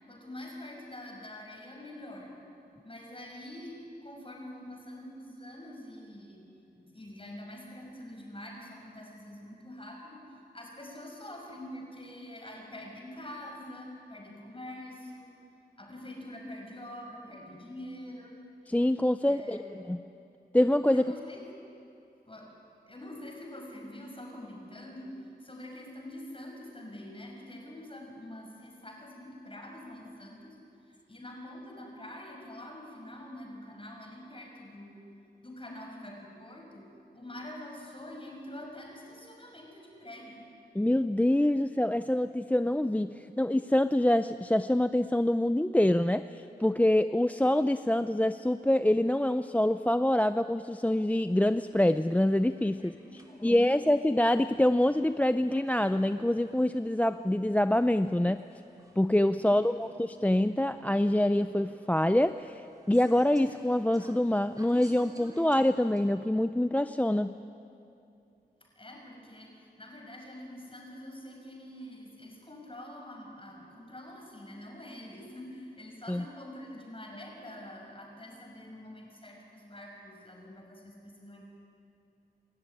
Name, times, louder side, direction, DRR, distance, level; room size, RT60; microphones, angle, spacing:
voice 1, 0.1-2.4 2.8-6.4 6.7-15.3 15.8-18.4 19.2-19.8 20.9-21.4 22.3-22.6 22.9-35.0 35.4-36.9 37.1-40.5 52.7-53.6 59.4-59.8 68.6-81.4, left 1 dB, 30° left, 0 dB, 5.8 m, -45 dB
voice 2, 18.7-19.6 19.9-20.0 20.5-21.1 40.7-53.0 53.4-58.4 59.0-67.4 76.1-76.2, left 1 dB, 10° left, 12 dB, 0.4 m, -26 dB
sound 1, 51.2-66.1, right 1 dB, 20° right, 3.8 m, -58 dB
28.0 x 13.5 x 9.9 m, 2.7 s
wide cardioid pair, 75°, 17 cm